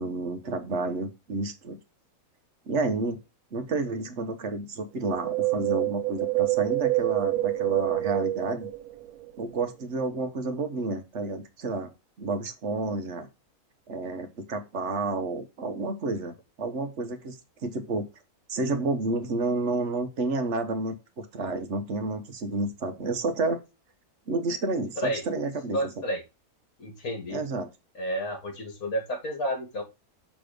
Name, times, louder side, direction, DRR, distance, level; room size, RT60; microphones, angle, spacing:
voice 1, 0.0-1.8 2.7-3.2 3.5-8.7 9.4-11.9 12.2-13.3 13.9-18.1 18.5-23.6 24.3-25.8 27.3-27.7, right 3 dB, 55° right, 7 dB, 1.1 m, -30 dB
Wind, 5.0-9.4 9.6-9.7, right 19 dB, 75° right, 1.1 m, -27 dB
voice 2, 25.7-26.2 26.8-27.4 28.0-29.8, equal, 70° left, 4 dB, 2.2 m, -31 dB
6.2 x 3.4 x 5.0 m, 0.26 s
omnidirectional pair, 1.6 m